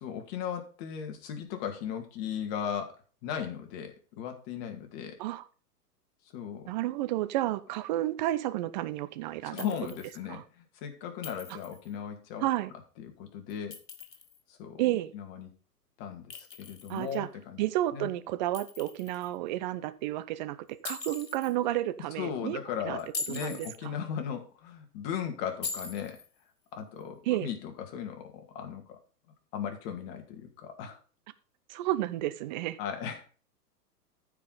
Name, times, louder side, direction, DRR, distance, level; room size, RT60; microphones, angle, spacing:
voice 1, 0.0-5.2 6.3-6.7 9.4-12.5 13.0-13.8 14.5-14.8 15.1-15.5 16.0-17.6 17.9-18.1 22.2-26.2 26.7-29.0 29.5-31.0 32.8-33.3, left 8 dB, 35° left, 5 dB, 2.2 m, -37 dB
voice 2, 6.7-9.6 10.3-10.4 12.4-12.7 14.8-15.1 16.9-17.3 17.6-20.6 20.8-22.6 22.9-23.0 23.3-23.9 27.3-27.5 31.7-32.8, right 15 dB, 30° right, 14 dB, 0.6 m, -31 dB
Chink clink, 9.6-10.2 11.2-11.9 13.5-14.4 16.3-17.2 18.5-19.3 20.8-21.5 23.0-23.8 25.6-26.3, left 4 dB, 80° left, 1.8 m, -41 dB
14.5 x 5.0 x 4.0 m, 0.38 s
figure-of-eight pair, 115°, 49 cm